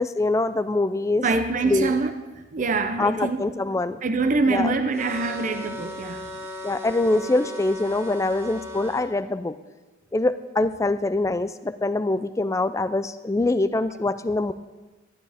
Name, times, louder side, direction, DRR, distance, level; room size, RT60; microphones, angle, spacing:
voice 1, 0.0-1.2 1.7-2.0 3.0-4.0 4.5-4.7 6.6-9.5 10.1-14.5, left 2 dB, 15° left, 0.3 m, -24 dB
voice 2, 1.2-2.1 2.5-3.5 4.0-6.3, right 3 dB, 40° right, 0.5 m, -24 dB
sound 1, 5.0-9.1, left 1 dB, 15° right, 0.9 m, -37 dB
12.5 x 11.5 x 3.5 m
head